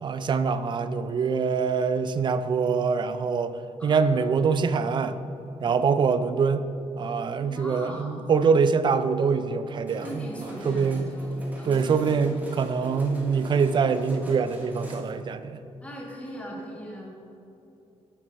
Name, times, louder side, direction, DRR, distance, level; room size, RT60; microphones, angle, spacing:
voice 1, 0.0-5.2 5.6-6.6 7.0-10.3 10.6-11.1 11.7-15.6, right 5 dB, 40° right, 12 dB, 0.4 m, -24 dB
voice 2, 3.8-4.3 7.4-8.3 10.0-12.5 15.8-17.1, equal, 10° left, -3 dB, 1.5 m, -39 dB
sound 1, 9.9-15.0, right 1 dB, 15° right, 1.2 m, -42 dB
7.8 x 6.1 x 5.2 m, 2.8 s
wide cardioid pair, 175°, 12 cm